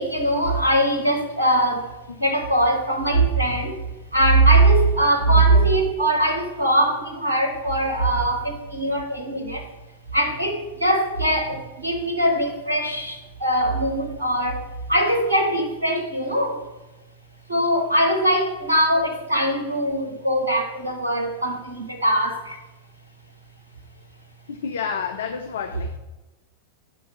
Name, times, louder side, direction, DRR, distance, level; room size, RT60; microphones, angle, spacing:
voice 1, 0.0-1.9 2.2-3.7 4.1-9.6 10.1-13.2 13.4-14.6 14.9-16.6 17.5-22.5, right 1 dB, 75° right, 4 dB, 1.0 m, -21 dB
voice 2, 5.3-5.7 24.5-26.0, left 6 dB, 65° left, 6 dB, 0.5 m, -30 dB
10.5 x 3.5 x 6.0 m, 1.1 s
figure-of-eight pair, 90°, 0 cm